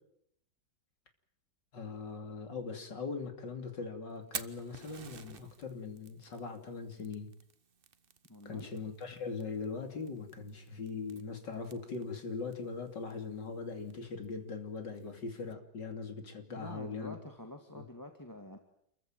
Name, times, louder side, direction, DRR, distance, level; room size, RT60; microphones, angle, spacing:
voice 1, 1.7-7.3 8.5-17.2 17.8-17.9, left 4 dB, 75° left, 6 dB, 3.4 m, -40 dB
Fire, 4.1-15.5, right 6 dB, 35° right, 1.1 m, -52 dB
voice 2, 8.3-8.7 16.5-18.6, left 1 dB, 10° left, 4 dB, 1.8 m, -47 dB
28.0 x 15.0 x 9.0 m, 0.74 s
omnidirectional pair, 1.9 m